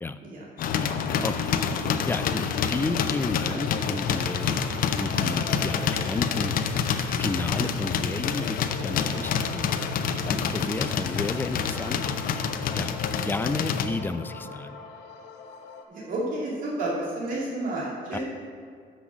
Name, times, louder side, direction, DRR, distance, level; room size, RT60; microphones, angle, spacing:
sound 1, 0.6-13.9, left 7 dB, 55° left, 0.6 m, -27 dB
voice 1, 2.1-4.6 5.0-6.6 7.0-9.6 10.3-12.0 12.7-13.0 13.2-14.8 18.1-18.2, left 3 dB, 10° left, 10 dB, 0.4 m, -32 dB
sound 2, 2.7-15.8, left 4 dB, 80° left, 0.9 m, -42 dB
voice 2, 15.9-18.2, right 2 dB, 55° right, -6 dB, 2.4 m, -31 dB
6.1 x 6.0 x 7.2 m, 2.1 s
cardioid pair, 110°, 17 cm